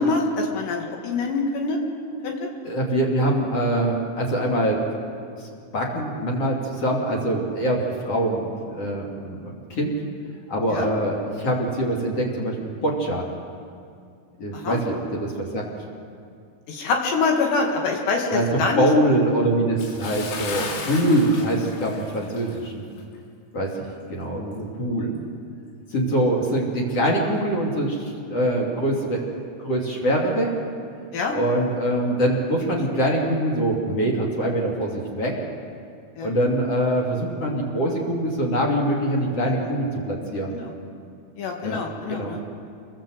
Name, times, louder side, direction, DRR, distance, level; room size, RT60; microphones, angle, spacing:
voice 1, 0.0-1.8 2.2-2.5 10.7-10.9 14.5-14.8 16.7-18.9 31.1-31.4 36.2-36.3 40.5-40.7 41.4-42.4, left 3 dB, 65° left, 1 dB, 4.0 m, -25 dB
voice 2, 2.6-4.8 5.7-9.9 10.5-13.2 14.4-15.6 18.3-22.9 23.5-23.7 24.1-25.1 25.9-30.5 31.3-35.3 36.2-40.6 41.6-41.8 42.1-42.4, right 1 dB, 35° left, -1 dB, 3.3 m, -24 dB
Bathtub (filling or washing) / Splash splatter, 19.8-22.7 23.0-23.2 23.7-23.8, left 4 dB, 85° left, 5.4 m, -35 dB
27.5 x 21.0 x 8.0 m, 2.4 s
omnidirectional pair, 5.7 m